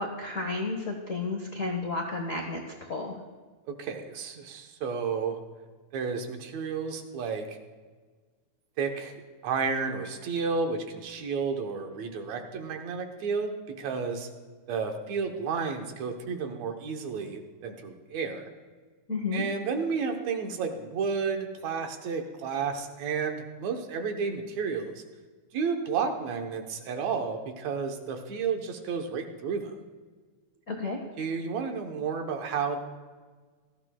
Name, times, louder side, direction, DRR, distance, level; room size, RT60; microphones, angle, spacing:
voice 1, 0.0-3.2 19.1-19.4 30.7-31.0, left 3 dB, 80° left, 2 dB, 0.7 m, -32 dB
voice 2, 3.7-5.4 5.9-7.6 8.8-14.3 14.7-18.5 19.3-25.0 25.5-29.8 31.2-32.8, right 5 dB, 75° right, 4 dB, 2.2 m, -32 dB
18.5 x 14.0 x 2.3 m, 1.4 s
omnidirectional pair, 3.3 m